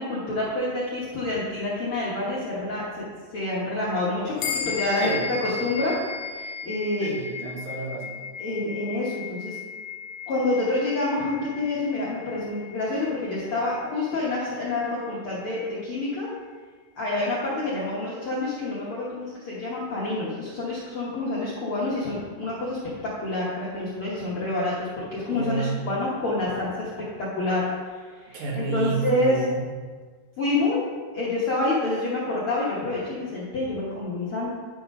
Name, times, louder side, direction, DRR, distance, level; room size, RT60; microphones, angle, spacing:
voice 1, 0.0-3.1 3.3-5.9 6.3-7.1 8.4-9.6 10.3-16.3 17.0-29.5 30.4-30.8 31.1-34.5, left 2 dB, 65° left, -7 dB, 1.3 m, -28 dB
sound 1, 4.4-14.1, left 6 dB, 80° left, 2.3 m, -36 dB
voice 2, 7.0-8.2 25.3-25.8 28.3-29.6, right 5 dB, 75° right, -3 dB, 3.3 m, -30 dB
9.9 x 3.9 x 5.2 m, 1.5 s
omnidirectional pair, 4.1 m